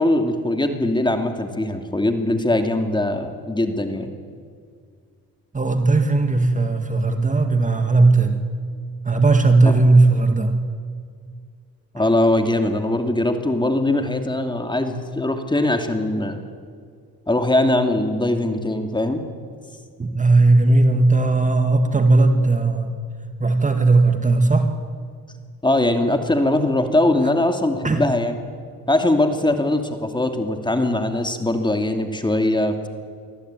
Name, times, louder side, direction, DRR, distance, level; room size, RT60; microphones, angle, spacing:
voice 1, 0.0-4.1 9.6-9.8 11.9-16.4 17.3-19.2 25.6-28.4 28.9-32.9, left 1 dB, 15° left, 6 dB, 2.5 m, -21 dB
voice 2, 5.5-8.4 9.1-10.6 20.0-23.0 23.4-24.7 27.8-28.0, right 3 dB, 20° right, 6 dB, 2.0 m, -17 dB
24.0 x 15.0 x 9.1 m, 2.1 s
cardioid pair, 85°, 33 cm